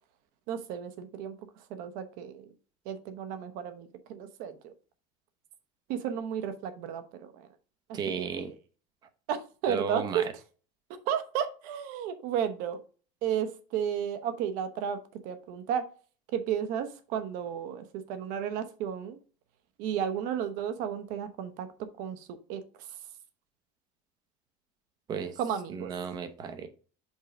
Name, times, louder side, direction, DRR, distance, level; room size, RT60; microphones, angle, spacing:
voice 1, 0.5-1.3 1.7-2.5 2.8-4.7 5.9-7.5 7.9-8.5 9.3-10.2 11.1-12.8 13.2-15.0 15.2-15.8 16.3-19.2 19.8-21.7 22.0-22.6 25.4-25.9, right 8 dB, 55° right, 9 dB, 1.0 m, -33 dB
voice 2, 7.9-8.5 9.7-10.3 25.1-25.4 25.7-26.7, right 6 dB, 25° right, 9 dB, 0.7 m, -34 dB
5.5 x 4.5 x 5.1 m, 0.39 s
cardioid pair, 180°, 17 cm